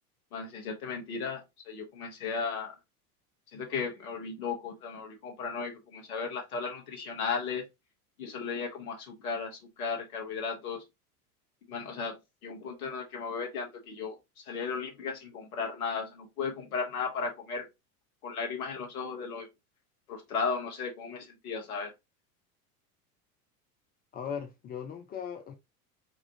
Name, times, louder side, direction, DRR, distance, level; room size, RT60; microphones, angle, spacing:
voice 1, 0.3-1.4 1.7-2.7 3.5-7.6 8.2-10.8 11.7-12.2 12.4-17.6 18.2-19.5 20.1-21.9, left 5 dB, 65° left, 1.2 m, -35 dB
voice 2, 24.1-25.5, left 7 dB, 20° left, 0.4 m, -38 dB
5.0 x 2.4 x 2.7 m
figure-of-eight pair, 80°, 46 cm